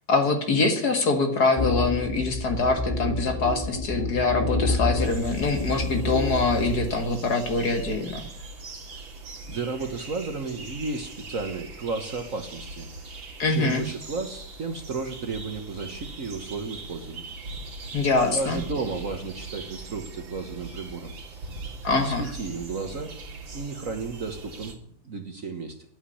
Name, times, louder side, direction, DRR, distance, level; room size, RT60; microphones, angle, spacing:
voice 1, 0.1-8.2 13.4-13.8 17.9-18.6 21.8-22.2, left 3 dB, 50° left, 5 dB, 2.1 m, -24 dB
sound 1, 1.6-6.9, left 2 dB, 30° left, 0.7 m, -28 dB
sound 2, 5.0-24.7, right 2 dB, 65° right, 3.1 m, -40 dB
voice 2, 9.5-12.9 13.5-17.2 18.3-21.1 21.9-23.2 23.5-24.8 25.0-25.8, right 4 dB, 45° right, 6 dB, 1.4 m, -33 dB
11.5 x 8.9 x 9.8 m, 0.67 s
omnidirectional pair, 2.3 m